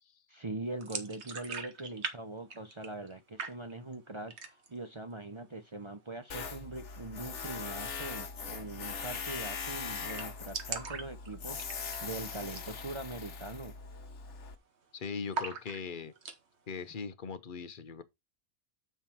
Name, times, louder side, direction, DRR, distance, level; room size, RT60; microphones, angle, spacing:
voice 1, 0.3-13.7, right 2 dB, 35° right, 0.4 m, -42 dB
sound 1, 0.8-2.2 2.4-3.1 3.4-3.9 4.3-4.8 5.1-5.2 5.6-6.2 7.9-8.1 8.4-8.5 8.7-8.8 9.1-9.5 9.8-9.9 10.0-12.1 12.4-12.7 13.0-13.1 13.7-14.0 14.2-14.8 15.3-16.4, right 4 dB, 55° right, 1.4 m, -40 dB
Tools, 6.3-14.6, left 5 dB, 60° left, 1.3 m, -41 dB
voice 2, 14.9-16.1 16.7-18.0, left 5 dB, 45° left, 0.9 m, -40 dB
7.3 x 5.6 x 4.4 m
omnidirectional pair, 1.4 m